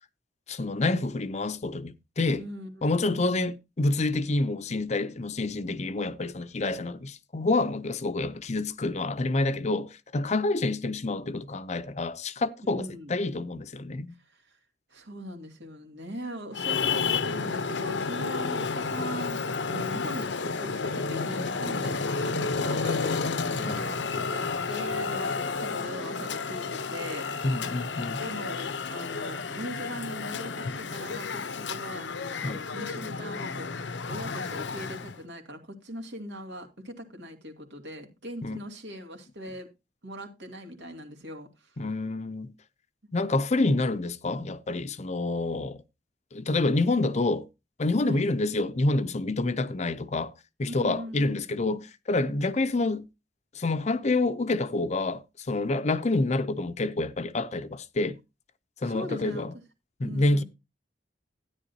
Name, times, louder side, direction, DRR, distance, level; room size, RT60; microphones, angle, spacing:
voice 1, 0.5-2.4 2.8-14.1 23.6-23.8 27.4-28.2 32.4-32.6 38.4-38.6 41.8-42.5 43.1-45.8 46.3-47.5 47.8-50.3 50.6-53.1 53.5-58.2 58.8-59.5 60.0-60.4, left 2 dB, 40° left, 0.6 m, -28 dB
voice 2, 2.4-3.3 12.6-13.1 14.9-19.4 19.7-27.3 28.2-32.1 32.4-33.7 34.1-39.7 40.0-41.7 48.0-48.2 50.7-51.8 58.8-59.5 60.0-60.4, equal, 75° right, 2.6 m, -40 dB
Traffic noise roadway noise, 16.5-35.2, left 4 dB, 85° left, 0.8 m, -31 dB
13.0 x 10.0 x 2.8 m
head